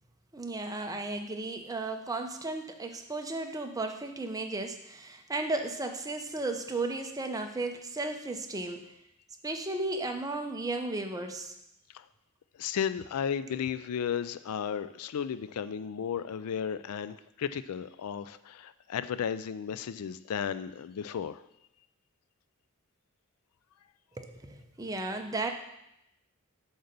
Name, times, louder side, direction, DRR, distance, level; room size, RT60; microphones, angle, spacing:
voice 1, 0.3-8.9 9.4-11.5 24.2-25.5, right 2 dB, 15° right, 5 dB, 0.7 m, -34 dB
voice 2, 12.6-21.5, left 8 dB, 75° left, 13 dB, 0.4 m, -34 dB
7.9 x 4.0 x 6.7 m, 0.83 s
head